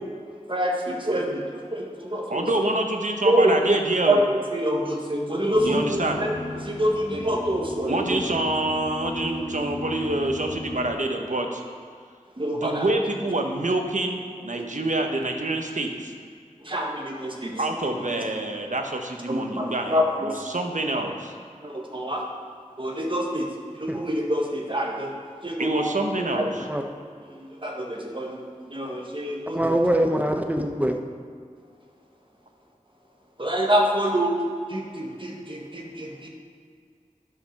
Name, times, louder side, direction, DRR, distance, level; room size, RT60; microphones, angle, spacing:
voice 1, 0.5-1.4 1.7-2.5 3.2-3.5 4.0-6.3 6.6-8.2 12.4-12.8 16.6-17.5 19.3-20.4 21.6-22.2 22.8-23.5 23.7-25.2 25.4-26.4 27.4-28.4 28.7-29.6 33.4-34.4 34.7-36.3, equal, 40° right, -1 dB, 1.5 m, -26 dB
voice 2, 2.3-4.2 5.6-6.2 7.9-11.6 12.5-16.1 17.6-21.3 25.6-26.7, right 2 dB, 70° right, 3 dB, 1.0 m, -26 dB
sound 1, 5.5-10.9, left 2 dB, 65° left, 1.7 m, -36 dB
voice 3, 29.5-31.0, right 1 dB, 10° right, 4 dB, 0.9 m, -23 dB
9.7 x 5.5 x 6.4 m, 2.1 s
wide cardioid pair, 45°, 13 cm